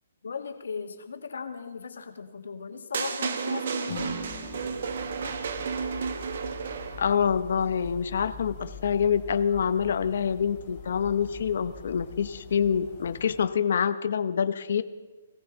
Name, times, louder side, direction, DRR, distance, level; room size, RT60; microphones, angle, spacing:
voice 1, 0.2-4.1, left 5 dB, 90° left, 6 dB, 1.7 m, -38 dB
sound 1, 2.9-7.2, right 5 dB, 50° right, 1.0 m, -32 dB
Acoustic guitar / Strum, 3.9-8.7, left 2 dB, 15° right, 3.4 m, -46 dB
sound 2, 4.0-13.5, left 5 dB, 15° left, 2.5 m, -45 dB
voice 2, 7.0-14.8, left 7 dB, 55° left, 12 dB, 0.8 m, -26 dB
17.5 x 17.5 x 4.0 m, 1.2 s
hypercardioid pair, 175°, 0 cm